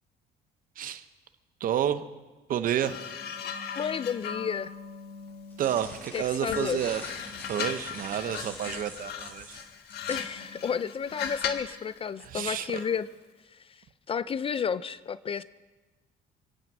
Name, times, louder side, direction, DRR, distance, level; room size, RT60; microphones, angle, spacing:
voice 1, 1.6-2.0 2.5-3.0 5.6-7.0 7.5-9.6 12.2-12.8, right 10 dB, 55° right, 10 dB, 0.9 m, -30 dB
sound 1, 2.8-6.0 6.5-11.8 12.7-13.0, left 7 dB, 75° left, 1.3 m, -38 dB
voice 2, 3.8-4.7 6.1-7.0 10.1-13.1 14.1-15.4, left 7 dB, 35° left, 16 dB, 0.4 m, -31 dB
sound 2, 5.3-10.3, equal, 10° left, 4.3 m, -45 dB
24.5 x 8.8 x 6.1 m, 1.2 s
cardioid pair, 110°, 17 cm